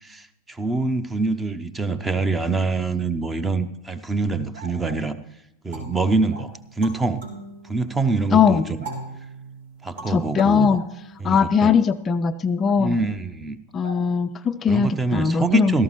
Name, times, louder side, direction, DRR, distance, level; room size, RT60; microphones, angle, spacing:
voice 1, 0.0-5.2 5.6-7.2 7.6-8.6 9.8-10.8 11.2-11.8 12.8-13.6 14.7-15.8, right 3 dB, 10° right, 13 dB, 0.7 m, -25 dB
sound 1, 4.5-5.1 6.3-6.5 7.8-7.9 8.8-9.0 10.7-10.9 12.7-13.1 13.8-14.0, right 1 dB, 75° right, 1.9 m, -42 dB
sound 2, 5.7-8.2 8.8-11.6, right 2 dB, 60° right, 3.5 m, -40 dB
voice 2, 8.3-8.7 10.1-10.8 11.2-13.0 13.7-15.8, left 6 dB, 25° left, 10 dB, 0.4 m, -20 dB
16.0 x 14.0 x 3.1 m, 0.85 s
figure-of-eight pair, 90°, 0 cm